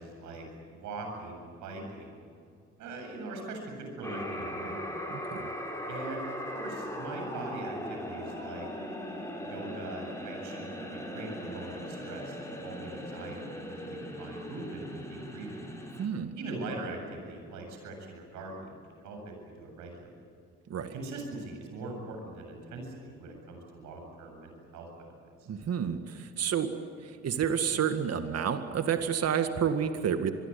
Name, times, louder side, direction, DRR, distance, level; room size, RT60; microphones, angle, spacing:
voice 1, 0.0-2.2 2.8-4.9 5.9-6.3 6.5-8.7 9.3-15.6 16.4-20.2 20.9-25.1 25.4-25.5, right 2 dB, 75° right, 3 dB, 7.9 m, -42 dB
sound 1, 4.0-16.1, equal, 10° left, 7.3 m, -39 dB
voice 2, 5.1-5.5 16.0-16.3 20.7-20.9 25.5-26.7 27.0-30.3, right 8 dB, 55° right, 8 dB, 2.0 m, -30 dB
26.5 x 22.0 x 8.6 m, 2.4 s
hypercardioid pair, 55°, 30 cm